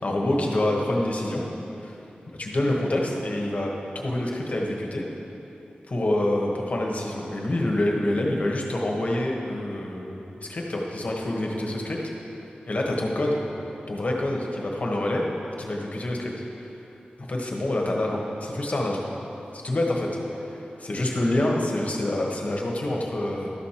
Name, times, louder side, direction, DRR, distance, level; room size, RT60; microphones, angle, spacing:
voice 1, 0.0-1.4 2.4-5.0 5.9-12.0 12.7-13.4 13.9-15.3 15.6-16.3 17.3-19.0 19.5-20.1 20.4-23.5, left 1 dB, 50° left, -1 dB, 1.3 m, -26 dB
12.5 x 6.4 x 4.3 m, 3.0 s
wide cardioid pair, 105°, 3 cm